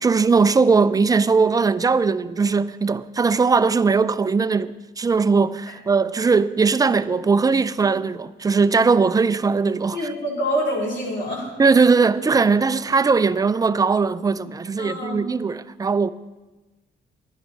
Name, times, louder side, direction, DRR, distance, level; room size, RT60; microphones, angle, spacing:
voice 1, 0.0-10.1 11.6-16.1, right 4 dB, 20° right, 0.4 m, -19 dB
voice 2, 9.9-11.5 14.8-15.2, equal, 65° left, 3.7 m, -26 dB
10.5 x 10.5 x 4.5 m
cardioid pair, 90°, 20 cm